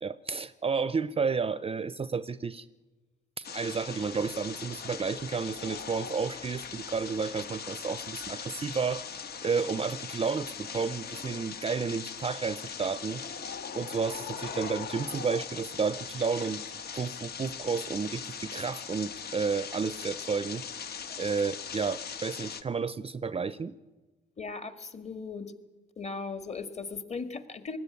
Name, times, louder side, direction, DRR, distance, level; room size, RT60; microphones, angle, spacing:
voice 1, 0.0-2.6 3.4-13.2 13.7-16.6 16.9-20.6 21.2-23.7, right 5 dB, 30° right, 16 dB, 0.6 m, -31 dB
sound 1, 3.4-22.6, left 6 dB, 55° left, 1.2 m, -40 dB
voice 2, 24.4-25.5 26.0-27.8, left 4 dB, 35° left, 9 dB, 1.9 m, -38 dB
20.0 x 13.5 x 9.5 m, 1.2 s
cardioid pair, 90°, 20 cm